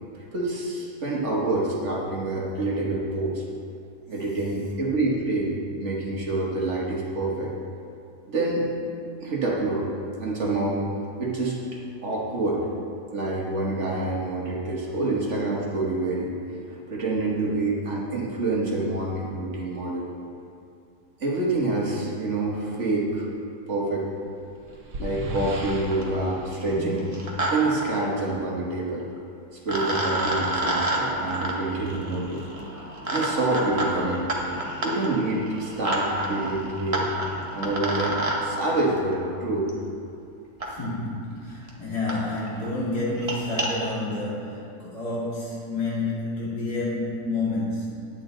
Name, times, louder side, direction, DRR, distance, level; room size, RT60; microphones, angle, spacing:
voice 1, 0.3-3.4 4.1-7.5 8.3-8.7 9.2-9.9 10.2-10.9 11.2-12.7 13.1-16.3 16.7-20.1 21.2-23.3 23.7-24.1 25.0-27.1 27.5-29.0 29.5-34.3 34.8-37.1 37.5-39.7, right 2 dB, 45° right, -3 dB, 1.6 m, -27 dB
sound 1, 24.1-27.8, right 1 dB, 75° right, 1.6 m, -37 dB
sound 2, 25.3-25.4 25.7-26.1 27.0-27.5 27.8-27.9 29.2-29.3 29.7-38.4 39.7-39.8 40.6-40.7 41.4-41.5 41.7-41.8 42.1-42.2 42.5-42.7 43.1-43.7, right 1 dB, 25° right, 1.0 m, -29 dB
voice 2, 26.7-27.2 29.7-29.8 40.7-48.1, left 2 dB, 65° left, -6 dB, 2.7 m, -29 dB
10.0 x 8.5 x 3.9 m, 2.6 s
omnidirectional pair, 1.8 m